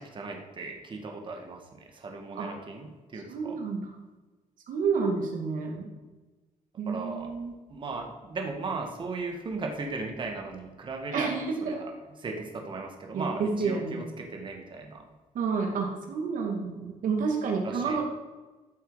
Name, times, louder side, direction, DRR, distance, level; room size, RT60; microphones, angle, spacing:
voice 1, 0.0-3.6 6.9-7.3 7.7-11.9 12.2-15.0 17.6-18.0, right 3 dB, 35° right, 2 dB, 1.7 m, -37 dB
voice 2, 3.3-3.8 4.7-5.9 6.8-7.5 11.1-11.8 13.1-14.0 15.3-18.0, right 5 dB, 75° right, 2 dB, 2.4 m, -29 dB
14.0 x 7.9 x 4.9 m, 1.2 s
cardioid pair, 155°, 14 cm